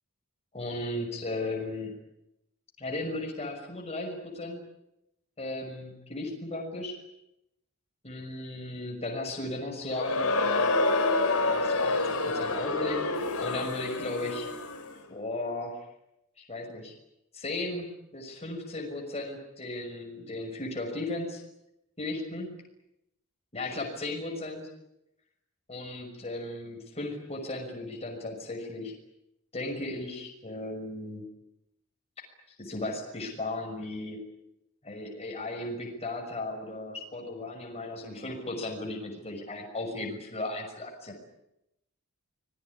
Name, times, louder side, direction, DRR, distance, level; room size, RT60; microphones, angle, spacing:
voice 1, 0.5-1.9 2.8-4.6 5.4-7.0 8.0-10.7 11.3-14.5 15.1-15.8 16.4-16.9 17.3-17.9 18.1-21.4 22.0-22.5 23.5-24.7 25.7-28.9 29.5-31.2 32.6-34.2 34.8-41.1, left 2 dB, 30° left, 1 dB, 6.1 m, -36 dB
Crowd, 9.9-14.9, left 2 dB, 70° left, 4.5 m, -28 dB
26.0 x 21.0 x 9.8 m, 0.85 s
head